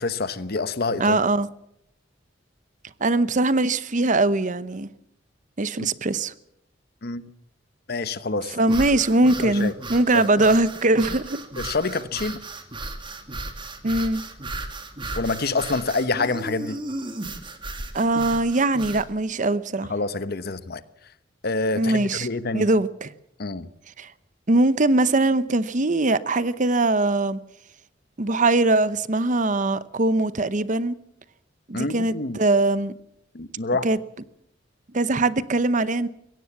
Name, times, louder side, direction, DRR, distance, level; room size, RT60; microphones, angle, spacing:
voice 1, 0.0-1.2 5.8-5.9 7.0-7.2 7.9-8.6 9.4-9.7 10.1-10.2 11.6-12.4 15.1-16.8 19.9-20.8 21.4-22.6 23.4-23.7 31.7-32.4 33.3-33.9, left 3 dB, 55° left, 1.1 m, -27 dB
voice 2, 1.0-1.5 3.0-4.9 5.6-6.3 8.5-11.4 13.8-14.2 17.9-19.9 21.8-22.3 22.5-23.1 24.0-24.1 24.5-27.4 28.2-31.0 31.7-32.9 33.8-34.0 34.9-36.1, right 2 dB, 40° right, 0.8 m, -21 dB
sound 1, 8.6-19.1, right 2 dB, 25° right, 2.2 m, -35 dB
22.0 x 17.0 x 7.2 m
head